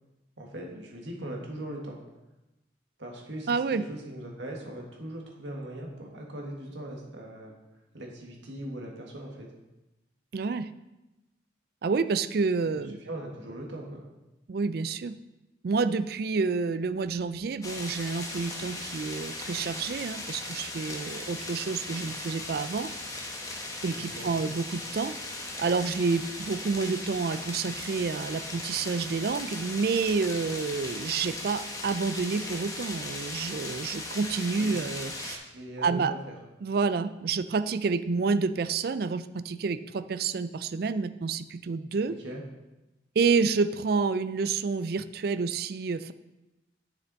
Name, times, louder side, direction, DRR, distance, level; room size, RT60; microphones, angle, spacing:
voice 1, 0.4-2.0 3.0-7.5 7.9-9.5 12.6-14.0 23.9-24.3 34.5-34.7 35.5-36.3 42.2-42.4, right 1 dB, 80° right, 0 dB, 1.7 m, -40 dB
voice 2, 3.5-3.8 10.3-10.7 11.8-13.0 14.5-15.2 15.6-22.9 23.8-25.1 25.6-35.4 35.8-36.1 36.6-42.2 43.2-46.1, right 4 dB, 55° right, 14 dB, 0.4 m, -29 dB
sound 1, 17.6-35.4, left 2 dB, 20° left, 1.0 m, -38 dB
9.2 x 6.8 x 4.0 m, 1.0 s
head